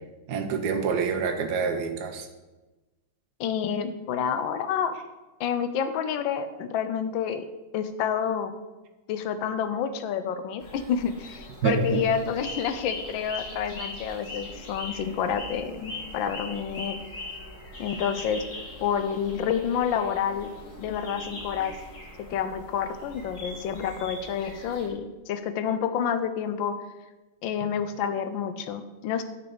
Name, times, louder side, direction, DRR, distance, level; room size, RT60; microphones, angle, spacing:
voice 1, 0.3-2.3 11.6-12.0, right 5 dB, 60° right, 4 dB, 1.4 m, -26 dB
voice 2, 3.4-4.9 5.4-7.4 7.7-8.5 9.1-17.0 17.8-18.4 18.8-20.5 20.8-21.7 22.3-26.8 27.4-29.2, left 8 dB, 75° left, 10 dB, 1.4 m, -29 dB
sound 1, 10.6-24.9, left 2 dB, 40° left, 2.4 m, -41 dB
9.1 x 5.3 x 6.8 m, 1.1 s
omnidirectional pair, 2.2 m